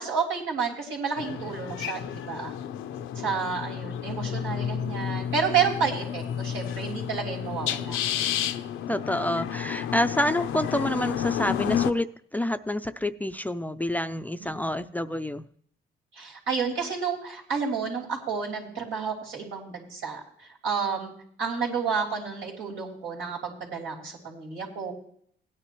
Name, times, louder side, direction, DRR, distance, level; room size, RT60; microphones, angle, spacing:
voice 1, 0.0-2.5 3.1-8.0 14.4-14.8 16.1-21.1 21.4-24.9, right 6 dB, 90° right, -3 dB, 3.4 m, -30 dB
sound 1, 1.2-11.9, left 9 dB, 85° left, 0.6 m, -31 dB
voice 2, 8.9-15.4, left 1 dB, 10° left, 10 dB, 0.4 m, -28 dB
17.0 x 9.7 x 3.1 m, 0.65 s
cardioid pair, 90°, 20 cm